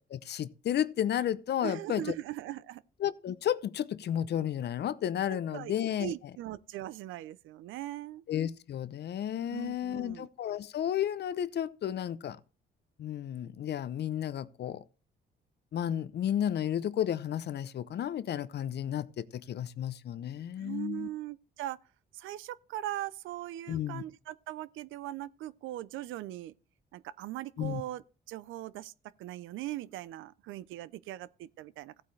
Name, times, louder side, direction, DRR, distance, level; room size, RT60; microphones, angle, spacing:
voice 1, 0.1-2.1 3.0-6.1 8.3-12.4 13.0-14.8 15.7-21.1 23.7-24.0 27.6-27.8, left 10 dB, 55° left, 0.6 m, -32 dB
voice 2, 1.6-2.8 5.3-5.7 6.0-8.2 9.5-10.3 20.6-21.8 22.1-26.5 26.9-28.9 29.2-32.0, right 14 dB, 90° right, 0.5 m, -40 dB
15.0 x 8.4 x 3.2 m
cardioid pair, 90°, 20 cm